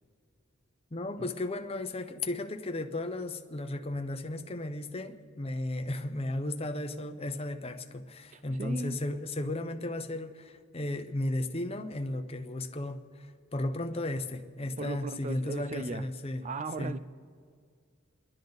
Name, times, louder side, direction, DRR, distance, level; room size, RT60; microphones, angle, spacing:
voice 1, 0.9-13.3 13.5-16.4 16.8-16.9, left 1 dB, 30° left, 6 dB, 0.8 m, -35 dB
voice 2, 8.3-9.0 14.8-16.0 16.4-17.0, right 3 dB, 35° right, 13 dB, 0.5 m, -37 dB
30.0 x 10.5 x 4.0 m, 2.1 s
head